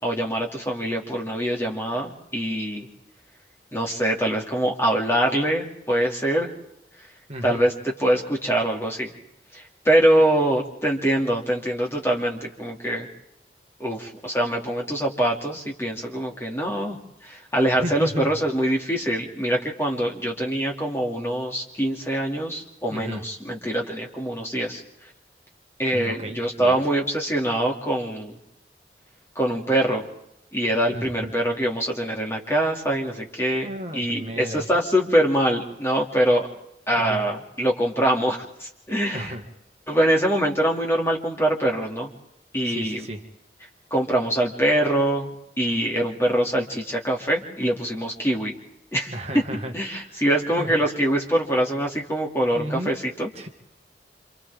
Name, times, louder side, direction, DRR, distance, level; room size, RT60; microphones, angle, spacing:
voice 1, 0.0-2.9 3.7-6.5 7.4-9.1 9.5-13.1 13.8-24.8 25.8-28.4 29.4-30.1 30.5-36.5 36.9-39.3 39.9-42.1 42.5-43.0 43.9-48.5 48.9-49.5 49.7-53.3, right 1 dB, 15° left, 0 dB, 2.6 m, -24 dB
voice 2, 7.3-7.7 17.8-18.3 22.9-23.2 25.9-26.8 30.9-31.3 33.6-34.6 37.0-37.2 39.1-39.5 42.6-43.2 49.1-50.2 50.6-50.8 52.5-52.9 53.4-53.5, equal, 35° right, 3 dB, 1.9 m, -33 dB
28.0 x 27.5 x 3.7 m, 0.80 s
head